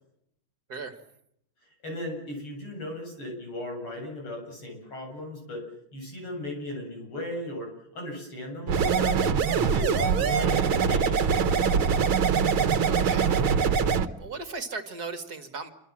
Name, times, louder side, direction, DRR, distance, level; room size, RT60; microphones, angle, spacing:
voice 1, 1.6-9.3 9.7-11.9, left 1 dB, 85° left, 2 dB, 8.6 m, -37 dB
sound 1, 8.7-14.1, right 6 dB, 70° right, 2.1 m, -23 dB
voice 2, 12.8-13.4 13.8-15.7, right 4 dB, 45° right, 8 dB, 2.5 m, -37 dB
28.0 x 25.0 x 7.6 m, 0.76 s
omnidirectional pair, 2.3 m